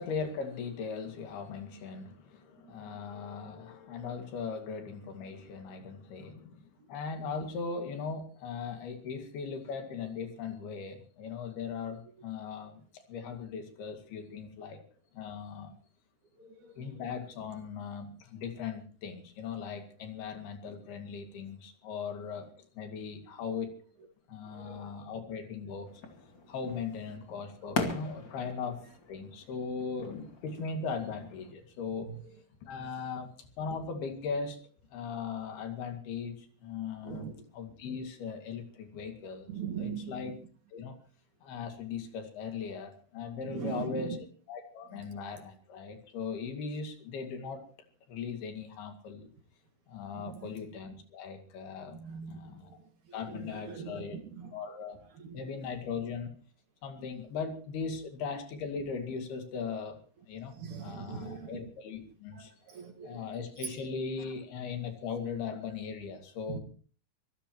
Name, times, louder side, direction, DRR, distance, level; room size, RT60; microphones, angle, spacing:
voice 1, 0.0-14.8 15.1-15.7 16.8-23.8 24.3-26.0 26.5-32.2 32.6-34.6 34.9-37.3 37.5-39.5 39.8-40.3 40.7-41.0 41.4-44.2 44.5-47.6 48.1-49.3 49.9-52.0 52.3-52.7 53.1-54.2 54.5-55.0 55.3-56.3 56.8-60.0 60.3-60.5 60.8-62.5 63.0-66.6, left 5 dB, 80° left, 4.2 m, -39 dB
voice 2, 2.6-3.0 16.4-17.0 24.5-25.0 27.9-28.0 32.1-32.2 37.0-37.4 39.5-40.3 43.4-44.2 44.9-45.0 50.1-50.5 51.9-52.5 53.1-54.6 55.2-55.4 57.0-57.1 60.5-61.6 62.3-63.3 63.6-63.8 66.5-66.6, right 6 dB, 55° right, 2.9 m, -41 dB
sound 1, 25.9-31.5, left 3 dB, 35° left, 2.4 m, -40 dB
25.0 x 15.5 x 3.1 m
omnidirectional pair, 4.5 m